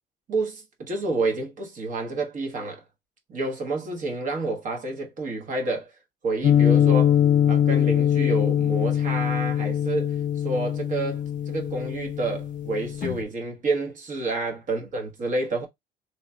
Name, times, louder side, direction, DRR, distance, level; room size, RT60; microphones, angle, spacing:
voice 1, 0.3-2.8 3.3-5.9 6.2-7.2 7.4-10.1 10.4-15.7, right 3 dB, 50° right, 1.3 m, -29 dB
sound 1, 6.4-13.2, left 10 dB, 50° left, 0.4 m, -22 dB
3.1 x 2.4 x 4.2 m
cardioid pair, 110°, 17 cm